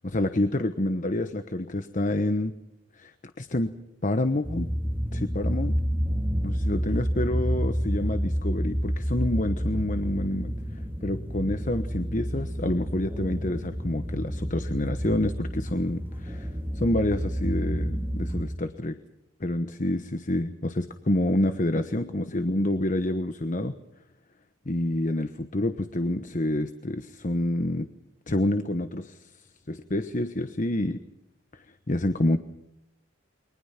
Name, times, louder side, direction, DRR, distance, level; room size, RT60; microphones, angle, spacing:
voice 1, 0.0-2.5 3.0-3.1 3.4-3.7 4.0-4.7 5.1-5.8 6.4-10.5 11.0-16.5 16.7-19.0 19.4-23.7 24.7-27.9 28.3-29.3 29.7-31.0 31.5-32.4, left 1 dB, 40° left, 9 dB, 1.1 m, -28 dB
sound 1, 4.4-18.5, equal, 10° right, 2.6 m, -29 dB
29.5 x 23.0 x 5.9 m, 0.88 s
head